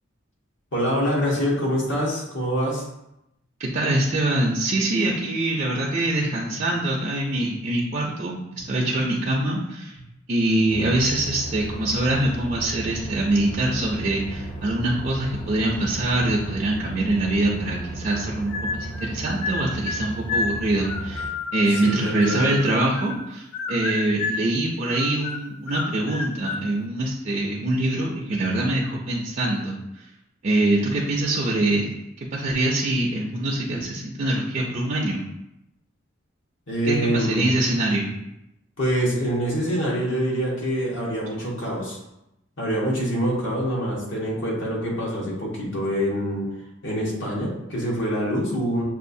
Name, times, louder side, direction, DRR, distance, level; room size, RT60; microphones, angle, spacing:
voice 1, 0.7-2.8 21.8-22.5 36.7-37.5 38.8-42.0 42.6-46.5 46.8-48.8, equal, 65° left, -4 dB, 1.3 m, -25 dB
voice 2, 3.6-10.0 10.3-30.0 30.4-31.9 32.2-35.2 36.8-38.1, right 1 dB, 40° right, -4 dB, 0.5 m, -24 dB
sound 1, 10.7-21.3, right 2 dB, 35° left, 0.6 m, -35 dB
sound 2, 18.5-19.1 19.4-23.2 23.5-24.5 24.9-26.7, left 4 dB, 85° left, 0.4 m, -30 dB
6.1 x 2.4 x 2.6 m, 0.86 s
head